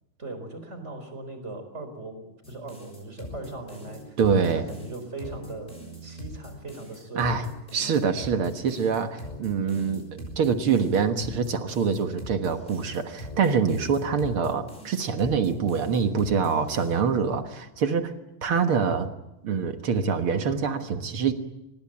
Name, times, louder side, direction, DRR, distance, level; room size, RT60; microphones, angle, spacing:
voice 1, 0.2-5.7 6.0-7.4, right 2 dB, 20° right, 8 dB, 4.2 m, -39 dB
sound 1, 2.4-17.0, equal, 10° left, 6.5 m, -42 dB
voice 2, 4.2-4.7 7.2-7.5 7.7-18.1 18.4-19.1 19.4-21.3, right 6 dB, 55° right, 7 dB, 1.8 m, -25 dB
24.0 x 20.5 x 8.7 m, 0.90 s
omnidirectional pair, 3.8 m